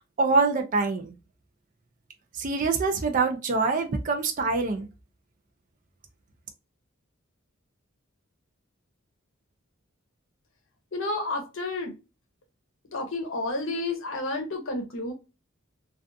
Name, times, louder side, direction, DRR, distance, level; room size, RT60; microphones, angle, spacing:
voice 1, 0.2-1.1 2.4-4.9, right 4 dB, 40° right, 4 dB, 0.4 m, -25 dB
voice 2, 10.9-11.9 12.9-15.1, left 2 dB, 65° left, 4 dB, 0.7 m, -30 dB
2.4 x 2.3 x 2.5 m, 0.28 s
head